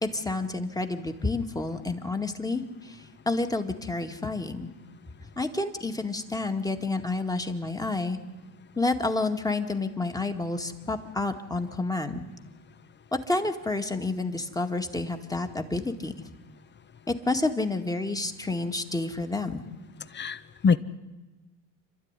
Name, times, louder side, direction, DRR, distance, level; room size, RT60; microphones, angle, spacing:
voice 1, 0.0-3.0 3.3-4.7 5.4-8.2 8.8-12.2 13.3-16.1 17.1-19.6, left 2 dB, 10° left, 6 dB, 2.0 m, -29 dB
voice 2, 20.1-20.8, left 5 dB, 25° left, 14 dB, 1.0 m, -24 dB
28.0 x 12.5 x 9.9 m, 1.2 s
supercardioid pair, 95°, 41 cm